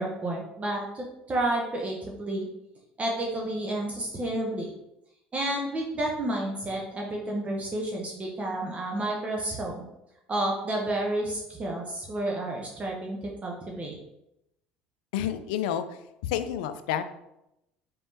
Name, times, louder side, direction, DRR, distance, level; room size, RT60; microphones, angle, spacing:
voice 1, 0.0-2.5 3.0-4.7 5.3-9.8 10.3-14.0, right 1 dB, 30° right, -1 dB, 0.8 m, -30 dB
voice 2, 15.1-15.8 16.2-17.0, left 10 dB, 80° left, 11 dB, 0.3 m, -29 dB
4.4 x 3.5 x 2.7 m, 0.85 s
hypercardioid pair, 80°, 5 cm